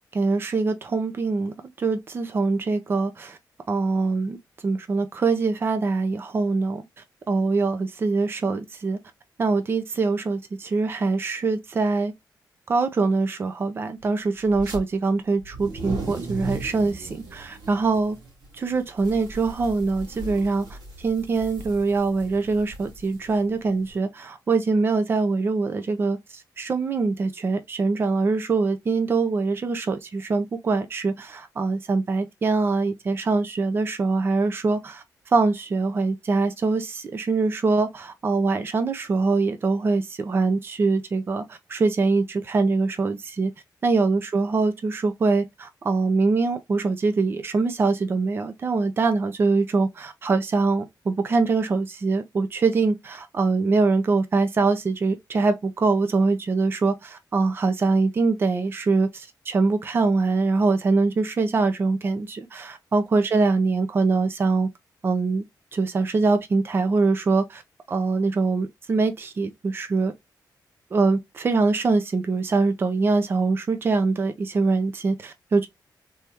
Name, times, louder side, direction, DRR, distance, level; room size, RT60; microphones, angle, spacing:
voice 1, 0.1-3.4 3.7-4.4 4.6-6.8 7.3-9.0 9.4-12.1 12.7-18.2 18.6-26.2 26.6-35.0 35.3-43.5 43.8-64.7 65.0-65.4 65.7-67.6 67.9-70.1 70.9-75.7, right 3 dB, 30° right, 0.6 m, -23 dB
sound 1, 14.5-14.8 15.4-23.9, right 3 dB, 70° right, 2.0 m, -37 dB
3.5 x 3.1 x 2.8 m
wide cardioid pair, 175°, 7 cm